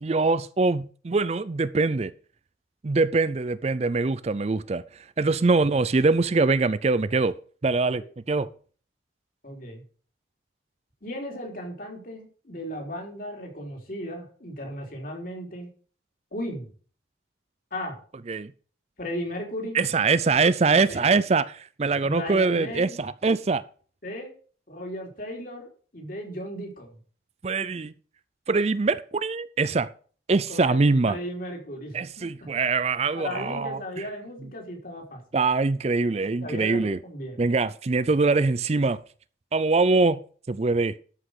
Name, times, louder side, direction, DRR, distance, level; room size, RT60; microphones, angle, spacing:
voice 1, 0.0-2.1 2.8-4.8 5.2-7.3 7.6-8.5 18.3-18.5 19.7-23.6 27.4-27.9 28.5-29.9 30.3-31.2 31.9-33.8 35.3-37.0 37.4-39.0 39.5-40.2 40.5-41.0, right 3 dB, 35° right, 0.4 m, -23 dB
voice 2, 9.4-9.8 11.0-15.7 16.3-16.7 17.7-18.0 19.0-19.8 20.9-21.1 22.0-23.0 24.0-24.3 24.7-27.0 30.5-32.3 33.1-35.2 36.4-37.4, equal, 50° left, 3.7 m, -36 dB
13.0 x 5.9 x 6.5 m
head